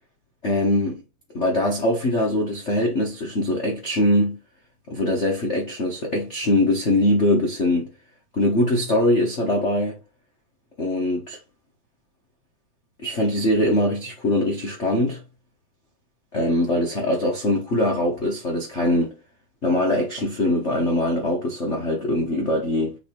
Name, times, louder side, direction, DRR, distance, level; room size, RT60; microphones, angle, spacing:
voice 1, 0.4-1.0 1.3-4.4 4.9-7.9 8.3-10.0 10.8-11.4 13.0-15.2 16.3-19.1 19.6-22.9, left 1 dB, 70° left, 0.6 m, -22 dB
7.0 x 3.4 x 4.4 m
omnidirectional pair, 3.5 m